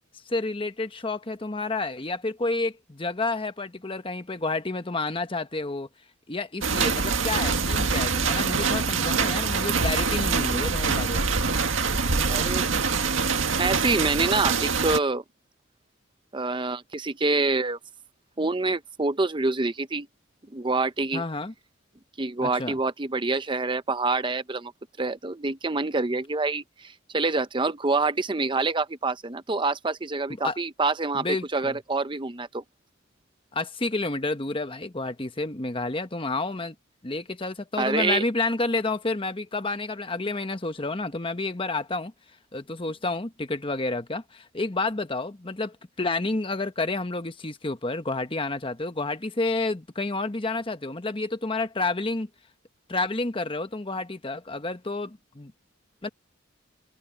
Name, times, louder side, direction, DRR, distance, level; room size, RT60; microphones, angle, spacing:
voice 1, 0.3-5.9 6.3-11.4 21.1-21.5 22.4-22.8 30.4-30.6 31.1-31.8 33.5-36.7 37.0-42.1 42.5-52.3 52.9-55.5 56.0-56.1, left 3 dB, 25° left, 1.1 m, -30 dB
sound 1, 6.6-15.0, right 4 dB, 70° right, 2.0 m, -24 dB
voice 2, 12.3-12.7 13.6-15.2 16.3-17.8 18.4-20.1 20.5-21.2 22.2-24.7 25.0-31.3 31.5-32.6 37.8-38.2, right 3 dB, 25° right, 0.7 m, -26 dB
head